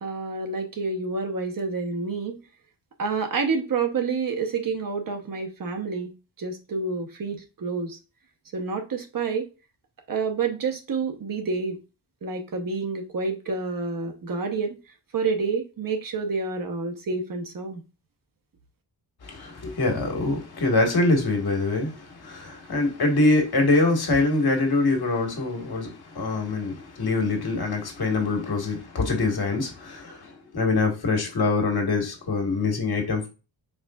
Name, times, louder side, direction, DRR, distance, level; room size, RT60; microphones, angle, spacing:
voice 1, 0.0-2.4 3.0-6.1 6.4-8.0 8.5-9.5 10.1-11.8 12.2-14.8 15.1-17.8, right 4 dB, 50° right, 1.0 m, -28 dB
voice 2, 19.2-33.3, left 3 dB, 60° left, 1.7 m, -24 dB
4.9 x 3.8 x 2.3 m
wide cardioid pair, 135°, 43 cm